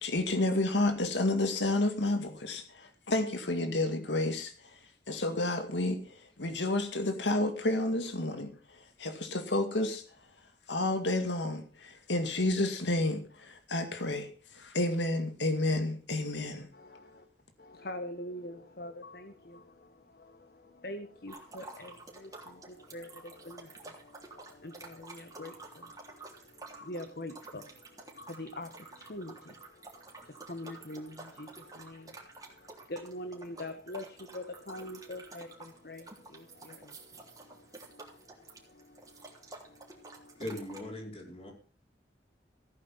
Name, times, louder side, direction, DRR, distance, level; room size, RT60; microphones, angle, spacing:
voice 1, 0.0-4.5 5.1-10.0 10.7-16.7, left 2 dB, 85° left, 7 dB, 2.1 m, -30 dB
voice 2, 16.7-17.3 17.6-40.4, left 1 dB, 60° left, 8 dB, 1.4 m, -45 dB
sound 1, 21.3-40.8, right 3 dB, 20° right, 3.4 m, -50 dB
voice 3, 40.4-41.5, left 1 dB, 35° left, 1 dB, 4.8 m, -39 dB
16.0 x 9.4 x 5.8 m, 0.38 s
head